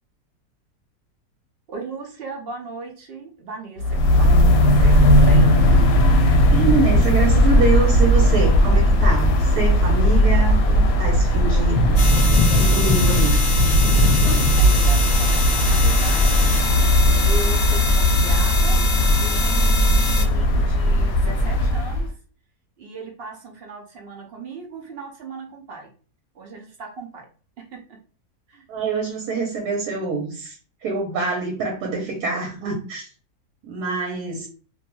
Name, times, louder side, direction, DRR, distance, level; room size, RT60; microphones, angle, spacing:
voice 1, 1.7-5.5 14.2-16.6 17.2-18.8 19.1-22.1 22.8-25.9 26.3-27.3 27.6-28.0 28.5-28.7, right 3 dB, 65° right, 2 dB, 0.6 m, -37 dB
sound 1, 3.8-22.1, equal, 70° left, 1.0 m, -17 dB
voice 2, 6.3-11.8 12.5-13.4 28.7-30.6 30.8-33.1 33.6-34.5, right 4 dB, 85° right, 1 dB, 1.2 m, -25 dB
sound 2, 9.3-16.9, left 3 dB, 5° right, 0.9 m, -28 dB
sound 3, 12.0-20.2, left 3 dB, 50° left, 0.5 m, -26 dB
2.6 x 2.2 x 2.9 m, 0.40 s
omnidirectional pair, 1.6 m